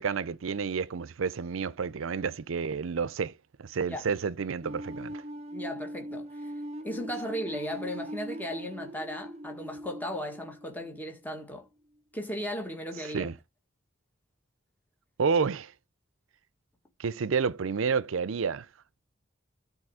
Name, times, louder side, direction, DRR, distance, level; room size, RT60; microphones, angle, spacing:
voice 1, 0.0-3.3 3.6-5.2 13.1-13.3 15.2-15.7 17.0-18.7, right 5 dB, 75° right, 0.5 m, -30 dB
sound 1, 4.6-11.5, equal, 35° right, 0.8 m, -41 dB
voice 2, 5.5-6.5 6.8-11.7 12.1-13.3, equal, 10° left, 1.8 m, -36 dB
12.5 x 4.1 x 4.9 m
head